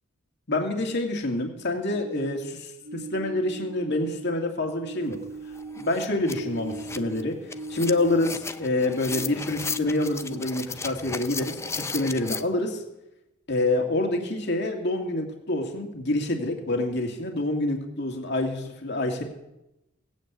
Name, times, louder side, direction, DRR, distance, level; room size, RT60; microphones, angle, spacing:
voice 1, 0.5-5.2 5.7-7.4 7.7-12.8 13.5-19.2, left 2 dB, 55° left, 2 dB, 2.3 m, -27 dB
sound 1, 1.9-4.4 4.7-8.6 9.0-10.6, right 2 dB, 45° right, 0.8 m, -39 dB
sound 2, 5.1-5.2 5.5-12.4, left 4 dB, 15° left, 0.5 m, -35 dB
17.5 x 8.9 x 8.2 m, 0.91 s
head